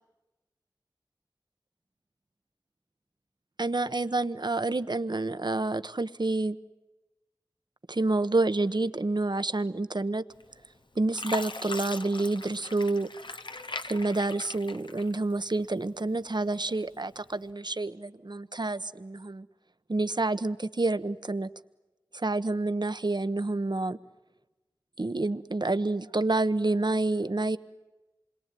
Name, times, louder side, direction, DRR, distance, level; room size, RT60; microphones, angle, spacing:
voice 1, 3.6-6.6 7.9-10.2 10.9-13.1 13.8-19.5 19.9-21.5 22.1-24.0 25.0-27.6, right 2 dB, 65° right, 11 dB, 1.1 m, -28 dB
Fill (with liquid), 10.4-10.8 11.2-15.6 16.0-16.8 17.3-17.5, left 2 dB, 85° left, 1.1 m, -39 dB
28.0 x 22.0 x 9.2 m, 1.1 s
wide cardioid pair, 45°, 8 cm